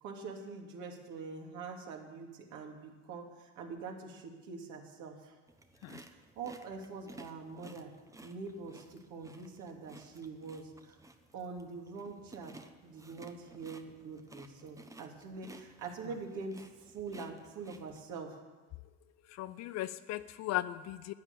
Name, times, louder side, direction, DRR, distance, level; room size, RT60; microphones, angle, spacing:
voice 1, 0.0-5.3 6.4-7.9 8.2-11.0 11.3-12.5 12.8-18.4, right 4 dB, 55° right, 1 dB, 2.9 m, -44 dB
sound 1, 5.5-18.2, right 2 dB, 10° right, 1.1 m, -56 dB
voice 2, 19.3-21.1, left 14 dB, 45° left, 14 dB, 0.7 m, -37 dB
11.5 x 9.8 x 8.4 m, 1.3 s
hypercardioid pair, 80°, 36 cm